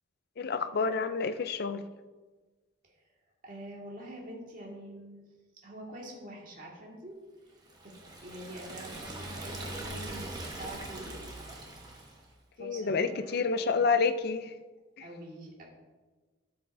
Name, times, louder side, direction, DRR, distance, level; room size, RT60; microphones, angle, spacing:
voice 1, 0.4-1.8 12.6-14.5 15.0-15.1, left 4 dB, 50° left, 11 dB, 0.4 m, -29 dB
voice 2, 3.4-5.2 5.6-7.2 8.2-11.2 12.6-14.1 15.0-15.6, right 1 dB, 40° right, -2 dB, 1.9 m, -45 dB
Liquid, 7.6-12.3, right 2 dB, 20° right, 1.1 m, -42 dB
12.5 x 7.6 x 2.6 m, 1.3 s
head